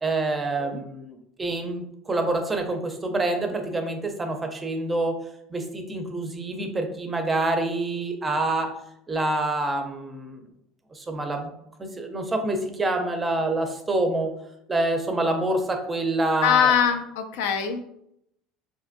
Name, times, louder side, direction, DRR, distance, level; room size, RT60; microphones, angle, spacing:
voice 1, 0.0-5.2 5.5-8.7 9.1-10.4 10.9-11.5 12.0-14.3 14.7-16.7, right 2 dB, 15° right, 4 dB, 0.5 m, -26 dB
voice 2, 16.4-17.8, left 8 dB, 85° left, 7 dB, 0.4 m, -22 dB
3.2 x 2.6 x 2.6 m, 0.76 s
supercardioid pair, 130°, 0 cm